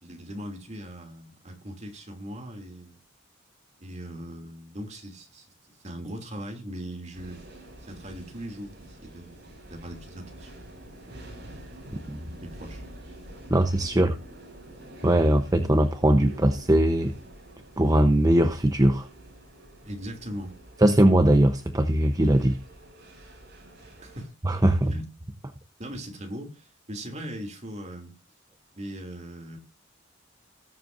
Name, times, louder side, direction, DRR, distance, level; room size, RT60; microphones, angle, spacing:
voice 1, 0.0-3.0 3.8-5.5 5.8-7.4 7.9-11.1 12.4-12.8 13.9-14.0 19.8-20.5 23.9-24.3 24.9-25.1 25.8-28.1 28.7-29.6, equal, 35° right, 2.7 m, -39 dB
sound 1, 7.1-24.3, right 1 dB, 55° right, 5.2 m, -47 dB
voice 2, 13.5-14.1 15.0-17.1 17.8-19.1 20.8-22.6 24.4-24.9, right 1 dB, 20° right, 0.8 m, -20 dB
19.0 x 7.6 x 2.6 m
head